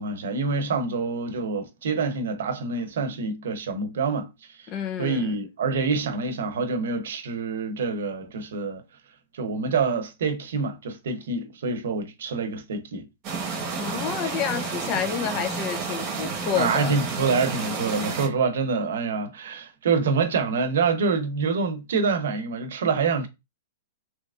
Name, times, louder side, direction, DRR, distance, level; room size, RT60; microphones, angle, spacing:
voice 1, 0.0-4.3 5.0-8.8 9.4-13.1 16.6-23.3, right 4 dB, 75° right, 0.8 m, -26 dB
voice 2, 4.7-5.4 13.8-17.0, left 8 dB, 30° left, 0.5 m, -29 dB
sound 1, 13.2-18.3, right 4 dB, 30° right, 1.1 m, -31 dB
3.3 x 2.9 x 2.5 m
hypercardioid pair, 150°, 0 cm